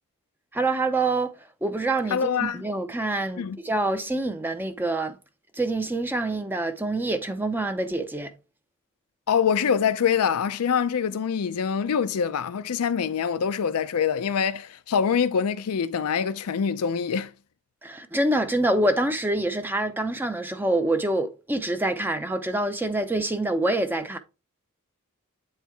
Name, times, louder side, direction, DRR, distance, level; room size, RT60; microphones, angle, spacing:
voice 1, 0.5-1.3 1.6-5.2 5.5-8.3 17.8-24.2, right 2 dB, 10° right, 0.5 m, -26 dB
voice 2, 2.1-2.6 3.4-3.6 9.3-17.3, left 7 dB, 75° left, 0.4 m, -25 dB
8.1 x 4.4 x 3.4 m
head